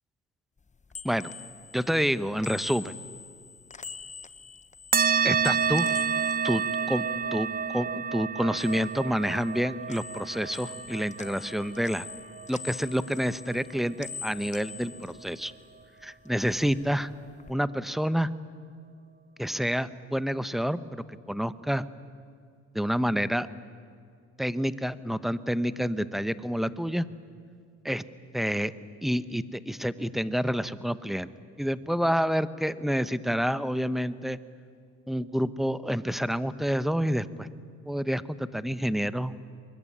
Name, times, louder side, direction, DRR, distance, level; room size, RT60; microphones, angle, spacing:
sound 1, 0.6-7.9 8.2-9.6 9.9-15.9 16.2-17.5, left 5 dB, 25° left, 1.0 m, -45 dB
voice 1, 1.7-3.0 5.2-6.0 6.4-7.0 7.3-12.1 12.5-15.5 16.0-17.1 17.5-18.3 19.4-21.8 22.7-23.5 24.4-27.0 27.8-28.0 28.3-28.7 29.0-31.3 31.6-34.4 35.1-37.5 37.9-39.4, equal, ahead, 15 dB, 0.9 m, -28 dB
sound 2, 4.9-13.8, right 6 dB, 30° right, 0.7 m, -29 dB
24.5 x 21.0 x 9.9 m, 2.3 s
cardioid pair, 90°, 30 cm